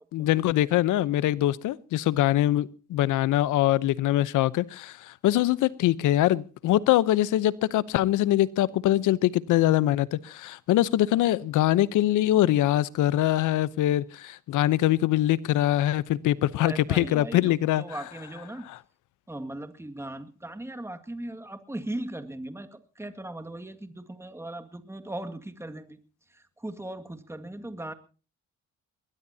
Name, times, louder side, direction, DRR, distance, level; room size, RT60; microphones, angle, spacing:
voice 1, 0.1-17.8 18.7-18.8, left 14 dB, 85° left, 0.8 m, -23 dB
voice 2, 16.6-18.7 19.3-26.0 26.3-27.9, right 1 dB, 10° right, 2.0 m, -38 dB
21.0 x 20.5 x 2.8 m
cardioid pair, 90°, 30 cm